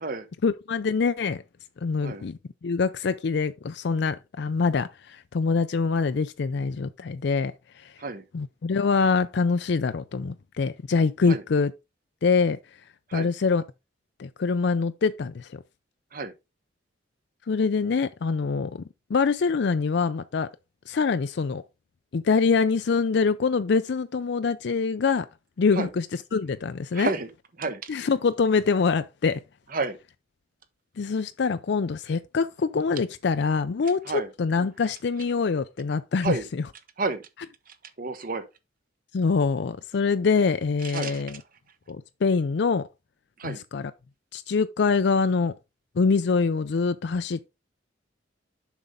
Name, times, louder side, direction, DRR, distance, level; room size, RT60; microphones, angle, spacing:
voice 1, 0.4-1.4 1.8-7.9 8.3-11.7 12.2-12.6 13.1-13.6 14.2-15.6 17.5-18.8 19.1-20.5 20.9-21.6 22.1-25.3 25.6-27.1 27.9-29.4 31.0-36.6 39.1-41.4 41.9-42.9 43.4-43.9 44.3-45.5 46.0-47.5, left 4 dB, 65° left, 0.4 m, -25 dB
voice 2, 26.9-27.3 27.6-27.9 29.7-30.0 34.1-34.3 36.2-36.4 37.0-37.2 38.0-38.4 40.9-41.2 43.4-43.6, right 3 dB, 50° right, 1.0 m, -30 dB
7.1 x 5.4 x 3.7 m
head